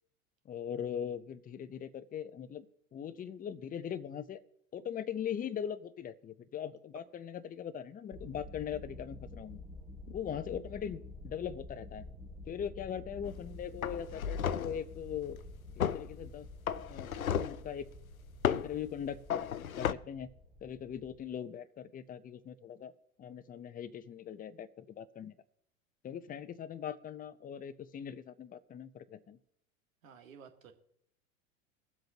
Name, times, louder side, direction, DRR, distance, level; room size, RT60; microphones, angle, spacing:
voice 1, 0.4-2.7 2.9-4.4 4.7-9.6 10.1-12.1 12.5-15.4 15.8-16.5 16.9-17.9 18.4-20.3 20.6-22.9 23.2-25.4 26.0-29.4, left 8 dB, 20° left, 14 dB, 0.8 m, -40 dB
sound 1, 8.1-21.3, left 2 dB, 15° right, 2.2 m, -49 dB
sound 2, 13.2-13.5 13.8-14.8 15.8-16.1 16.7-17.6 18.4-18.7 19.3-19.9, left 8 dB, 90° left, 0.6 m, -33 dB
voice 2, 30.0-30.7, right 7 dB, 70° right, 5 dB, 2.0 m, -53 dB
23.5 x 7.8 x 2.9 m, 0.72 s
hypercardioid pair, 90°, 41 cm